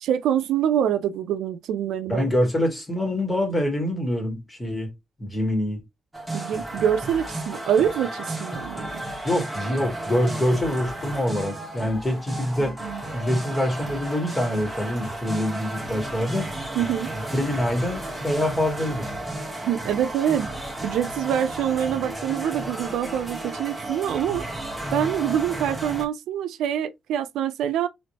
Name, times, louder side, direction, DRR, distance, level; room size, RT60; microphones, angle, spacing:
voice 1, 0.0-2.3 6.3-9.0 12.6-13.0 16.7-17.1 19.7-20.5 20.8-24.4 24.9-27.9, right 9 dB, 80° right, 0.4 m, -25 dB
voice 2, 2.1-4.9 5.2-5.8 9.2-12.8 13.1-16.5 17.1-19.1, left 1 dB, 15° left, 1.8 m, -25 dB
sound 1, 6.1-26.1, right 1 dB, 10° right, 1.1 m, -33 dB
3.2 x 2.9 x 2.8 m
cardioid pair, 90°, 0 cm